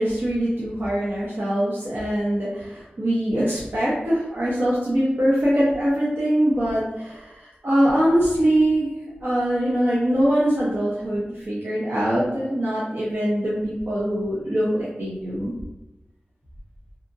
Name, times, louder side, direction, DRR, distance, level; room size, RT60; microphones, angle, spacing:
voice 1, 0.0-8.9 9.2-15.5, equal, 65° right, -8 dB, 0.8 m, -23 dB
2.8 x 2.5 x 2.5 m, 0.99 s
cardioid pair, 50°, 4 cm